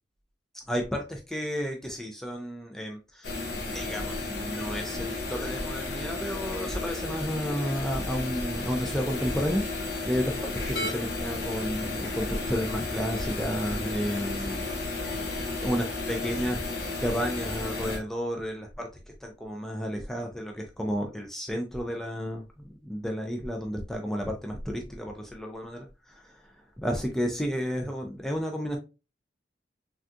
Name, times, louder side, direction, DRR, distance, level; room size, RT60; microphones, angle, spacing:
voice 1, 0.7-9.6 10.0-10.4 10.7-14.6 15.3-16.6 17.0-18.9 19.2-26.5 26.8-28.8, equal, ahead, 1 dB, 0.3 m, -32 dB
sound 1, 3.2-18.0, left 2 dB, 65° left, 0.9 m, -33 dB
3.4 x 2.3 x 2.5 m, 0.29 s
head